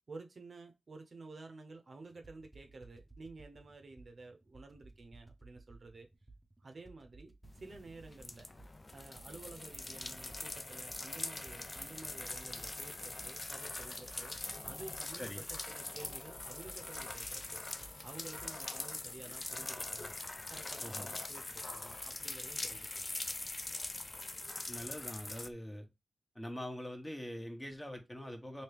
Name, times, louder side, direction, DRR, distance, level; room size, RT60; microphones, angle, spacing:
voice 1, 0.1-6.1 6.6-8.5 8.9-14.4 14.6-17.6 18.0-20.1 20.5-23.1, right 3 dB, 60° right, 0.7 m, -52 dB
sound 1, 2.1-18.5, right 2 dB, 15° right, 0.7 m, -58 dB
sound 2, 7.4-25.5, left 2 dB, 35° left, 0.4 m, -43 dB
voice 2, 24.7-25.9 26.3-28.6, equal, 15° left, 1.0 m, -43 dB
2.9 x 2.7 x 3.3 m
cardioid pair, 65°, 0 cm